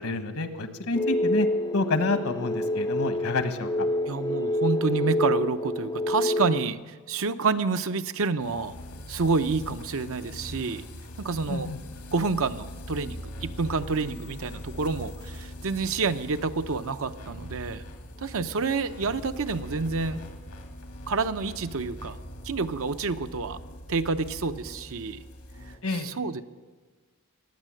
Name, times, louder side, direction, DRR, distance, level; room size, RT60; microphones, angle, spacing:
voice 1, 0.0-1.5 1.7-3.9 11.5-11.8 25.8-26.1, left 3 dB, 70° left, 9 dB, 1.3 m, -28 dB
sound 1, 0.9-6.7, left 1 dB, 15° left, 0.4 m, -27 dB
voice 2, 4.1-8.7 9.1-10.9 11.2-11.7 12.1-17.8 18.2-20.2 21.1-22.2 22.4-23.6 23.9-25.2 25.9-26.4, right 4 dB, 65° right, 10 dB, 0.7 m, -28 dB
sound 2, 8.4-25.8, left 1 dB, 90° left, 2.3 m, -42 dB
20.0 x 9.1 x 7.7 m, 1.4 s
head